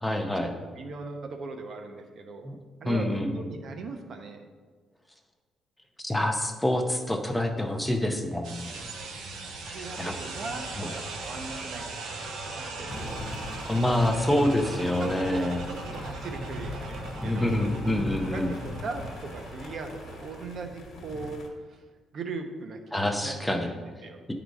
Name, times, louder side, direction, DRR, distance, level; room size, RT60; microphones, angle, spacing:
voice 1, 0.0-0.5 2.4-2.6 2.9-3.3 6.0-8.7 10.0-10.1 10.8-10.9 13.7-15.6 17.2-18.5 22.9-23.7, left 1 dB, 5° left, 4 dB, 0.6 m, -26 dB
voice 2, 0.8-2.5 2.8-4.5 9.6-13.3 15.0-17.6 18.3-21.4 21.7-21.8 22.1-24.2, right 3 dB, 40° right, 5 dB, 0.8 m, -39 dB
sound 1, 8.4-20.4, right 3 dB, 90° right, 1.2 m, -39 dB
sound 2, 12.9-21.5, left 2 dB, 50° left, 1.3 m, -39 dB
10.0 x 3.9 x 4.7 m, 1.5 s
cardioid pair, 165°, 0 cm